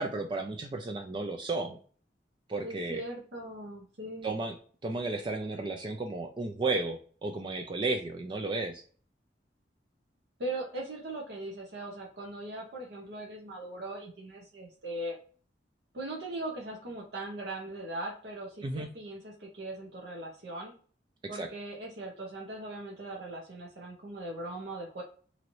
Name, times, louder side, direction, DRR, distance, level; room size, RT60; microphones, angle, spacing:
voice 1, 0.0-1.8 2.5-3.0 4.2-4.6 4.8-8.8 18.6-18.9 21.3-21.5, right 3 dB, 25° right, 4 dB, 0.3 m, -33 dB
voice 2, 2.6-4.3 10.4-15.2 15.9-20.7 21.3-25.0, right 1 dB, 65° right, -2 dB, 0.8 m, -39 dB
3.0 x 2.6 x 2.9 m, 0.44 s
head